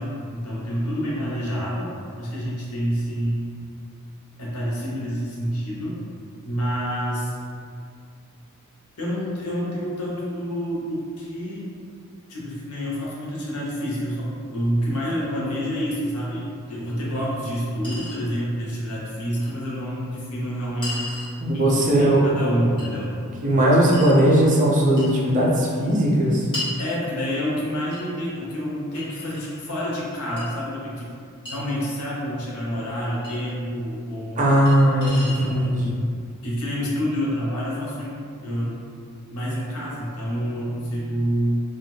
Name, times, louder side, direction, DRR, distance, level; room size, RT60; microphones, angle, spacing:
voice 1, 0.0-3.5 4.4-6.0 6.4-7.4 9.0-11.7 12.3-21.1 21.5-21.7 22.0-23.2 23.5-23.6 26.8-31.1 31.5-34.5 35.0-35.7 36.4-38.8 39.3-41.6, equal, 90° left, -5 dB, 0.8 m, -28 dB
Chink clink, 16.9-17.0 17.8-18.2 19.4-19.5 20.8-21.4 22.8-22.9 23.9-24.2 25.0-25.2 26.5-26.8 27.9-28.1 29.0-29.7 30.4-30.5 31.5-31.6 33.2-33.3 34.7-34.8 35.0-35.5, left 1 dB, 25° left, 1.2 m, -34 dB
voice 2, 21.4-22.4 23.4-26.5 34.4-35.9, right 1 dB, 35° right, -4 dB, 0.5 m, -18 dB
2.5 x 2.3 x 3.2 m, 2.3 s
head